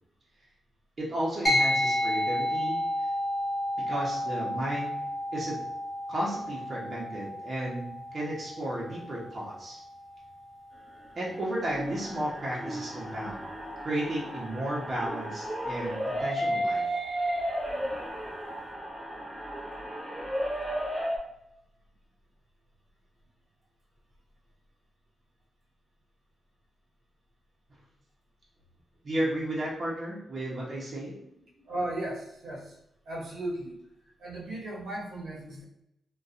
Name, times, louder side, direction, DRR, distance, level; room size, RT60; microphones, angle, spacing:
voice 1, 1.0-2.8 3.9-4.9 5.3-5.6 6.1-9.8 11.1-13.5 13.8-16.8 29.0-31.1, right 1 dB, 45° right, -5 dB, 0.9 m, -33 dB
sound 1, 1.5-11.2, left 1 dB, 10° left, 1.2 m, -32 dB
sound 2, 11.3-21.2, equal, 10° right, 0.6 m, -33 dB
voice 2, 31.6-32.8 33.0-33.8 34.2-35.6, right 1 dB, 75° right, -5 dB, 0.9 m, -36 dB
2.6 x 2.3 x 2.5 m, 0.82 s
cardioid pair, 75°, 0 cm